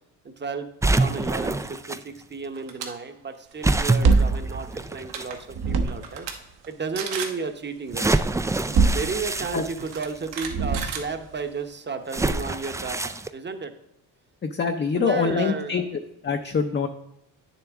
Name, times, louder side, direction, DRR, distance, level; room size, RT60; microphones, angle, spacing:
voice 1, 0.4-6.3 6.7-8.1 8.9-13.7 14.9-15.8, right 4 dB, 25° right, 8 dB, 1.0 m, -33 dB
sound 1, 0.8-2.0 3.6-5.3 6.0-6.1 7.9-10.3 12.1-13.3, right 2 dB, 10° right, 0.3 m, -26 dB
sound 2, 2.5-2.9 3.3-3.5 4.7-4.8 5.0-5.4 5.9-6.3 6.6-6.7 7.0-7.4 8.6-8.7 9.8-11.6, right 7 dB, 85° right, 1.4 m, -34 dB
sound 3, 4.0-5.2 5.5-6.3 8.4-9.7 10.4-11.2, right 4 dB, 60° right, 1.2 m, -23 dB
voice 2, 14.4-15.8 16.2-16.9, left 5 dB, 25° left, 5 dB, 0.6 m, -24 dB
9.0 x 7.0 x 3.6 m, 0.84 s
cardioid pair, 85°, 43 cm